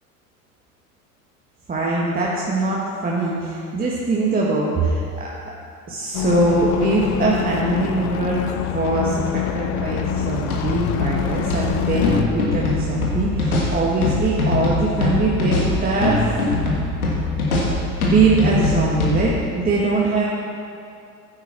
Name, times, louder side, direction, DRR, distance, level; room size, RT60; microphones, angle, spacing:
voice 1, 1.7-5.3 5.9-16.2 18.0-20.2, right 3 dB, 20° right, -5 dB, 1.7 m, -22 dB
sound 1, 6.1-12.2, left 7 dB, 40° left, 0.8 m, -25 dB
sound 2, 10.2-19.2, left 2 dB, 75° left, 2.7 m, -22 dB
15.0 x 9.0 x 4.5 m, 2.5 s
figure-of-eight pair, 75°, 44 cm